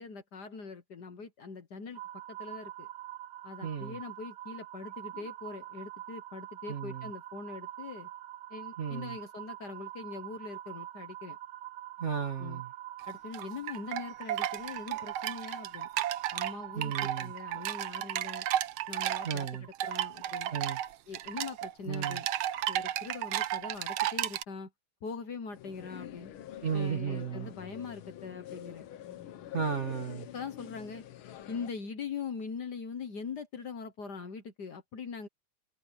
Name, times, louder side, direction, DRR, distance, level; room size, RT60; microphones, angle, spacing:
voice 1, 0.0-2.0 2.3-2.9 3.4-8.1 8.5-11.4 12.4-12.6 13.1-15.9 16.3-18.5 18.9-20.5 21.1-22.3 22.7-24.7 25.0-26.3 26.7-28.9 30.3-31.0 31.5-35.3, left 5 dB, 55° left, 1.7 m, -42 dB
sound 1, 1.9-18.0, right 13 dB, 60° right, 1.4 m, -45 dB
voice 2, 3.6-4.0 6.7-7.1 8.8-9.2 12.0-12.7 16.7-17.3 19.2-19.7 20.5-20.8 21.9-22.2 26.6-27.5 29.5-30.3, right 6 dB, 35° right, 2.1 m, -34 dB
sound 2, 13.0-24.4, right 12 dB, 80° right, 1.6 m, -34 dB
sound 3, 25.5-31.7, left 11 dB, 75° left, 1.8 m, -46 dB
omnidirectional pair, 2.4 m